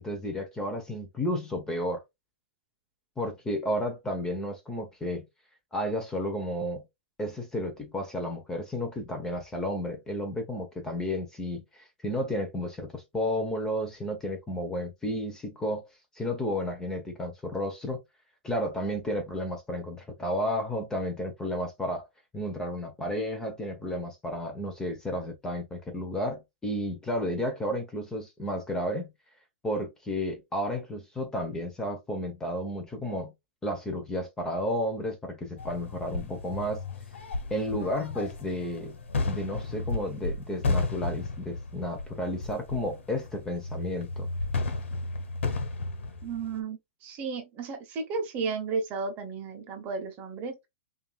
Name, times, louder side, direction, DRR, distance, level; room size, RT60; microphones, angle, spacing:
voice 1, 0.0-2.0 3.2-5.3 5.7-6.8 7.2-15.8 16.2-18.0 18.4-22.0 22.3-29.1 29.6-33.3 33.6-36.8 37.5-39.0 39.3-44.3, equal, 10° left, 0.9 m, -32 dB
sound 1, 35.6-46.6, left 3 dB, 85° left, 1.3 m, -33 dB
voice 2, 46.2-50.6, right 4 dB, 30° right, 1.0 m, -33 dB
5.3 x 2.7 x 2.4 m
hypercardioid pair, 145°, 6 cm